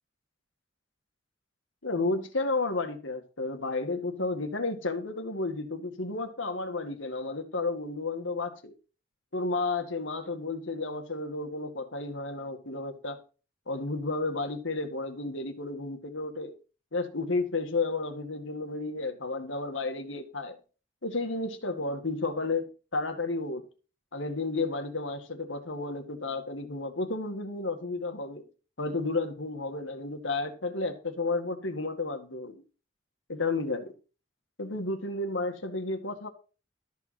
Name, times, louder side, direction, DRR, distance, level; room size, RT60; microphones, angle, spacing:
voice 1, 1.8-8.7 9.3-13.2 13.7-16.5 16.9-20.6 21.0-22.7 22.9-23.7 24.1-28.4 28.8-32.6 33.3-33.9 34.6-36.3, left 3 dB, 85° left, 2.0 m, -32 dB
13.0 x 4.7 x 7.6 m
head